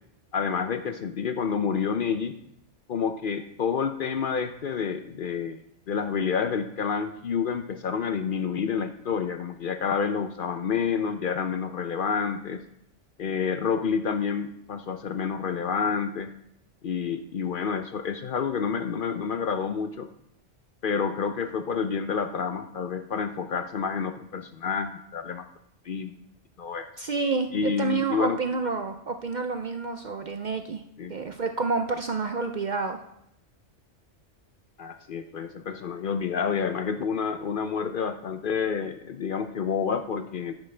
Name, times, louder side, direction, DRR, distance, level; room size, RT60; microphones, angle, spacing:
voice 1, 0.3-2.3 2.9-5.6 5.9-12.6 13.2-16.3 16.8-20.1 20.8-25.5 25.8-26.1 26.6-26.9 27.5-28.4 31.0-31.1 34.8-40.5, left 6 dB, 55° left, 8 dB, 0.6 m, -29 dB
voice 2, 27.0-30.8 31.1-33.0, right 4 dB, 55° right, 6 dB, 0.5 m, -29 dB
10.5 x 9.3 x 3.3 m, 0.76 s
omnidirectional pair, 1.2 m